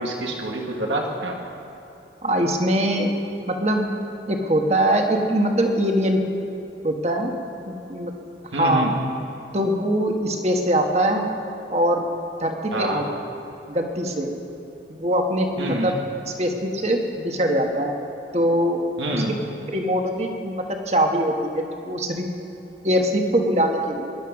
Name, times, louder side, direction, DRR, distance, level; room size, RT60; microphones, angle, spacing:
voice 1, 0.0-1.4 8.5-8.9 12.7-13.1 15.6-15.9 19.0-19.4, right 1 dB, 90° right, 0 dB, 1.8 m, -26 dB
voice 2, 2.2-3.1 3.5-4.0 4.3-6.2 6.8-7.3 7.7-8.1 8.5-8.9 9.5-11.3 11.7-12.1 12.4-13.1 13.7-14.3 14.9-15.9 16.4-17.9 18.3-18.8 19.1-19.2 19.7-22.3 22.8-24.1, equal, 35° right, 3 dB, 1.5 m, -22 dB
19.5 x 11.5 x 6.0 m, 2.9 s
head